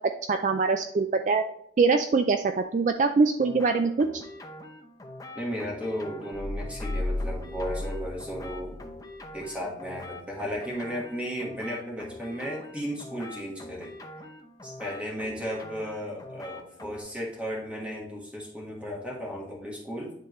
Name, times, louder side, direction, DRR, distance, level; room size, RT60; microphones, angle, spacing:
voice 1, 0.3-1.4 1.8-4.2, right 4 dB, 40° right, 7 dB, 0.3 m, -23 dB
sound 1, 3.4-17.0, left 1 dB, 20° left, 0.7 m, -45 dB
voice 2, 5.3-8.8 9.3-13.9 14.6-20.1, equal, 5° right, -3 dB, 1.6 m, -35 dB
sound 2, 6.3-8.9 9.2-9.3, left 2 dB, 55° left, 1.9 m, -33 dB
10.5 x 3.7 x 3.1 m, 0.72 s
head